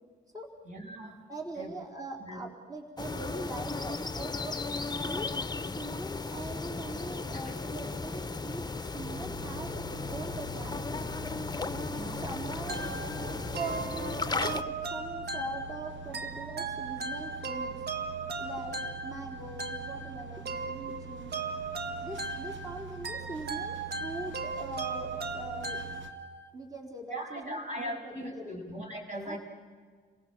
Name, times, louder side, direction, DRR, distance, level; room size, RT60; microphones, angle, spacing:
voice 1, 0.7-1.2 1.6-1.7 2.2-2.4 7.3-7.4 11.9-12.2 27.1-29.4, equal, 35° right, 2 dB, 7.1 m, -39 dB
voice 2, 1.3-4.6 5.0-11.0 11.7-11.9 12.2-12.9 13.2-17.8 18.4-21.4 21.9-25.8 26.5-28.6 29.2-29.4, right 2 dB, 20° right, 0 dB, 4.1 m, -42 dB
sound 1, 3.0-14.6, left 3 dB, 20° left, 0.9 m, -35 dB
sound 2, 9.0-26.1, right 6 dB, 70° right, 2.1 m, -46 dB
sound 3, 12.7-26.5, right 3 dB, 55° right, 1.7 m, -38 dB
29.0 x 17.5 x 7.6 m, 1.5 s
cardioid pair, 70°, 20 cm